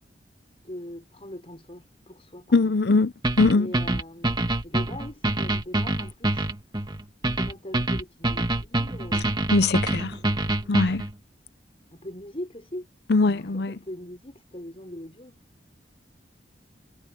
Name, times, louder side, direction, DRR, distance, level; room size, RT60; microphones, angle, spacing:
voice 1, 0.6-2.8 3.5-4.4 4.6-6.5 7.4-9.3 9.9-10.8 11.9-12.9 13.2-15.4, left 1 dB, 35° left, 6.1 m, -41 dB
voice 2, 2.5-3.1 3.4-3.7 9.5-10.1 10.7-11.0 13.1-13.7, left 3 dB, 65° left, 0.7 m, -20 dB
sound 1, 3.2-11.1, right 1 dB, 25° right, 1.6 m, -26 dB
head